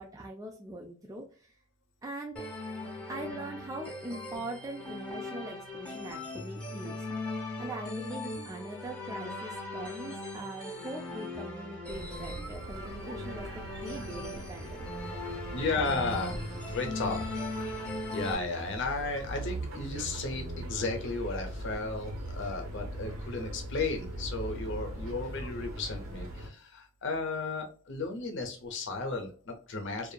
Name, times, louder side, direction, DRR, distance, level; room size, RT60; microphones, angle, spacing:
voice 1, 0.0-1.5 2.0-2.5 3.1-7.0 7.6-13.5 13.8-14.9, right 2 dB, 15° right, 0 dB, 0.3 m, -42 dB
sound 1, 2.4-18.4, left 2 dB, 5° left, 0.7 m, -39 dB
voice 2, 7.2-7.6 15.5-16.4 16.7-17.3 17.5-30.1, left 3 dB, 60° left, 4 dB, 0.7 m, -34 dB
sound 2, 11.9-26.5, right 1 dB, 90° right, 1.0 m, -40 dB
2.7 x 2.4 x 2.2 m, 0.38 s
head